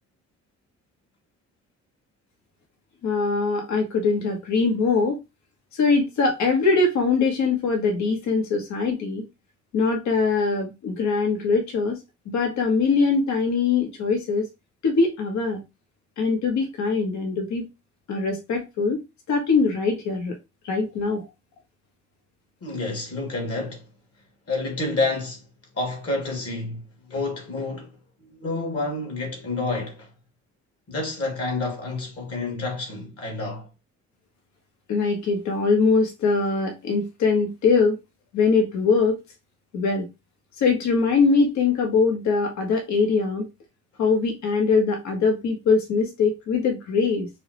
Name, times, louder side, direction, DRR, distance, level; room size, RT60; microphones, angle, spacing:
voice 1, 3.0-5.2 5.7-9.3 9.7-12.0 12.3-14.5 14.8-15.6 16.2-17.7 18.1-20.4 20.6-21.3 34.9-38.0 38.3-39.2 39.7-40.1 40.6-43.4 44.0-47.3, left 4 dB, 70° left, 1.1 m, -22 dB
voice 2, 22.6-23.9 24.5-25.4 25.7-26.8 27.1-30.1 30.9-33.7, left 2 dB, 50° left, 1.9 m, -29 dB
5.5 x 2.1 x 2.9 m
cardioid pair, 90°, 30 cm